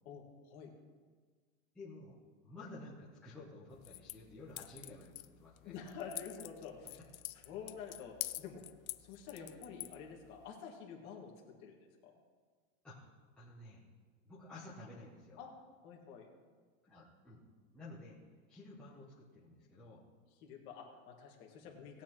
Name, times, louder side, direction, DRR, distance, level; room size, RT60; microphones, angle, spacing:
voice 1, 0.0-0.7 5.6-7.0 7.4-8.6 9.0-11.3 11.6-11.8 12.0-12.2 15.4-15.5 15.8-16.3 20.4-22.0, left 6 dB, 25° left, -1 dB, 1.7 m, -48 dB
voice 2, 1.7-5.7 7.3-7.5 12.8-13.8 14.2-15.4 16.8-17.4 17.7-18.2 18.5-20.0 21.6-21.7, left 2 dB, ahead, -10 dB, 0.6 m, -53 dB
sound 1, 3.7-10.5, left 15 dB, 90° left, 0.7 m, -48 dB
18.5 x 9.2 x 3.0 m, 1.5 s
supercardioid pair, 175°, 40 cm